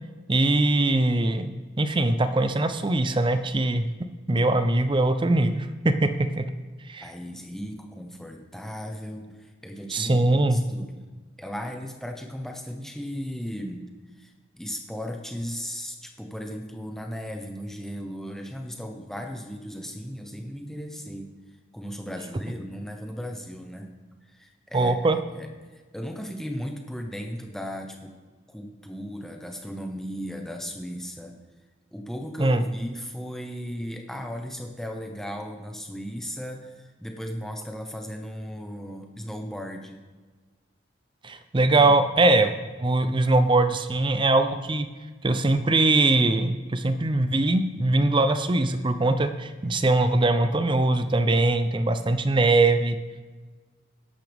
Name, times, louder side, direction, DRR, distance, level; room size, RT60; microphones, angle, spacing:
voice 1, 0.3-3.9 4.3-6.5 6.9-7.0 9.9-10.6 24.7-25.2 32.4-32.6 41.2-42.5 42.8-44.9 45.2-53.0, right 2 dB, 25° right, 10 dB, 0.6 m, -22 dB
voice 2, 7.0-11.1 11.4-13.8 14.2-21.3 21.7-23.9 24.3-28.1 28.5-31.4 31.9-40.0 41.8-41.9 49.6-49.7, equal, ahead, 3 dB, 1.0 m, -36 dB
14.0 x 11.0 x 3.5 m, 1.4 s
head